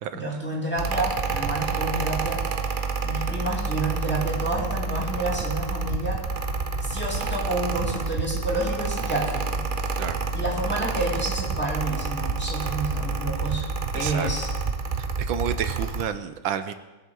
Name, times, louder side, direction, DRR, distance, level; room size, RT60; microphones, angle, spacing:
voice 1, 0.1-2.5 3.0-6.2 6.8-9.6 10.3-13.7 13.9-14.5, right 2 dB, 5° left, -3 dB, 2.9 m, -29 dB
Mechanical fan, 0.8-16.1, right 4 dB, 50° right, 0.6 m, -28 dB
voice 2, 9.9-10.2 13.9-14.3 15.2-16.7, right 9 dB, 85° right, 11 dB, 1.5 m, -30 dB
21.5 x 7.6 x 6.3 m, 1.1 s
omnidirectional pair, 2.1 m